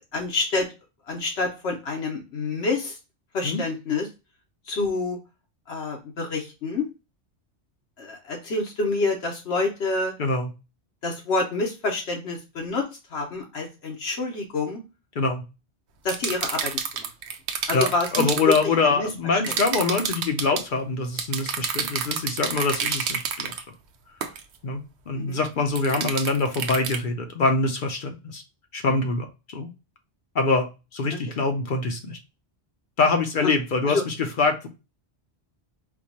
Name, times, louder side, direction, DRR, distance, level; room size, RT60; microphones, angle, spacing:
voice 1, 0.1-0.7 1.1-3.0 3.3-4.1 4.7-5.2 5.7-6.9 8.0-10.1 11.0-14.8 16.0-16.7 17.0-17.1 17.7-18.3 18.9-19.1 19.5-19.6 25.1-25.4 31.1-31.2 33.4-33.5 33.9-34.0, left 3 dB, 85° left, 1 dB, 1.1 m, -27 dB
voice 2, 10.2-10.5 15.2-15.4 17.7-23.5 24.6-24.8 25.1-28.4 28.7-29.7 30.3-32.2 33.0-34.7, left 3 dB, 55° left, 6 dB, 0.7 m, -24 dB
sound 1, 16.1-18.6 19.4-20.6 21.2-23.6 24.2-24.4 25.8-27.0, right 7 dB, 85° right, 0.9 m, -29 dB
4.5 x 2.3 x 2.7 m, 0.27 s
omnidirectional pair, 1.1 m